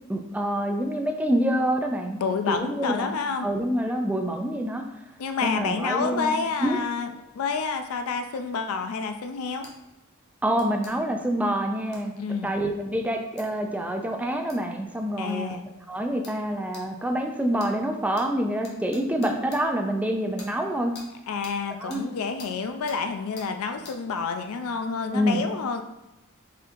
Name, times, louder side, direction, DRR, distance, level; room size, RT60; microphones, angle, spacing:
voice 1, 0.1-2.2 2.5-4.8 5.4-6.3 6.6-6.8 10.4-12.1 12.4-15.6 15.9-20.9 21.7-22.0 25.1-25.4, right 1 dB, 5° right, 3 dB, 0.4 m, -27 dB
voice 2, 2.2-3.5 5.2-7.1 7.3-9.7 12.2-12.5 15.2-15.7 21.3-25.8, left 5 dB, 80° left, 7 dB, 0.4 m, -29 dB
sound 1, 9.6-9.8 10.6-10.9 11.9-12.1 13.4-13.5 14.5-14.6 15.3-15.4 16.2-16.4 16.7-16.9 17.6-17.7 18.2-18.3 18.6-19.6 20.4-20.5 20.9-21.1 21.4-21.6 21.9-22.0 22.4-22.5 22.9-23.0 23.4-23.5 23.8-24.0, left 3 dB, 50° left, 0.9 m, -45 dB
4.2 x 3.8 x 2.6 m, 0.96 s
head